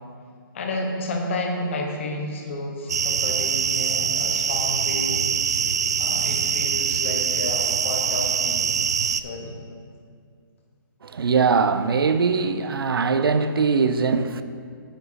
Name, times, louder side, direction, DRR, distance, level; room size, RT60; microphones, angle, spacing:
voice 1, 0.5-5.2 6.0-8.7 9.2-9.6, left 2 dB, 35° left, 1.2 m, -31 dB
sound 1, 2.9-9.2, right 7 dB, 50° right, 0.4 m, -24 dB
voice 2, 11.0-14.4, right 5 dB, 85° right, 0.6 m, -21 dB
9.9 x 8.1 x 4.1 m
hypercardioid pair, 175°, 12 cm